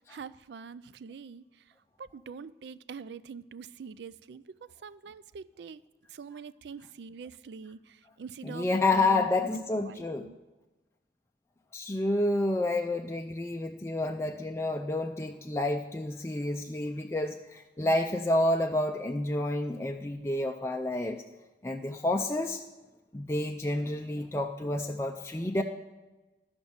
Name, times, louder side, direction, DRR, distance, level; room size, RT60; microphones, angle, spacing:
voice 1, 0.1-1.7 2.0-5.8 6.1-10.4, right 5 dB, 65° right, 17 dB, 0.4 m, -44 dB
voice 2, 8.4-10.3 11.7-21.2 21.6-22.6 23.1-25.6, left 2 dB, 15° left, 3 dB, 0.4 m, -29 dB
13.0 x 5.2 x 7.1 m, 1.2 s
head